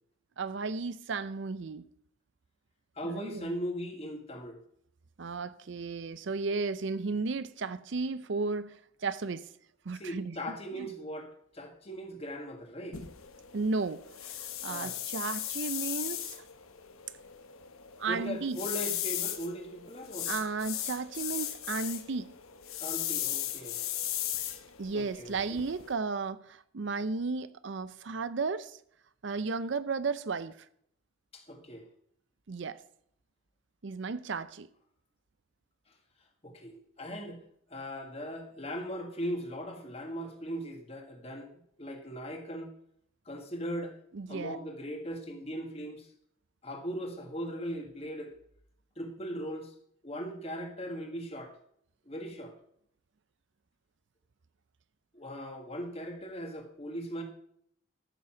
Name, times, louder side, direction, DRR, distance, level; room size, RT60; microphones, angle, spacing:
voice 1, 0.4-1.8 3.0-3.5 5.2-9.5 9.9-10.5 13.5-16.4 18.0-18.6 20.3-22.3 24.8-28.8 29.2-30.6 32.5-32.8 33.8-34.7 44.1-44.6, right 4 dB, 60° right, 0.5 m, -34 dB
voice 2, 2.9-4.6 9.9-13.0 14.7-15.0 18.1-20.3 22.8-23.8 24.9-25.4 31.3-31.9 36.4-37.4 37.7-41.5 41.8-42.7 43.2-44.0 44.3-46.1 46.6-48.3 49.0-49.7 50.0-51.5 52.0-52.5 55.1-57.2, equal, 30° left, 1.8 m, -39 dB
sound 1, 12.9-25.9, left 12 dB, 85° left, 1.2 m, -37 dB
13.5 x 7.0 x 5.9 m
head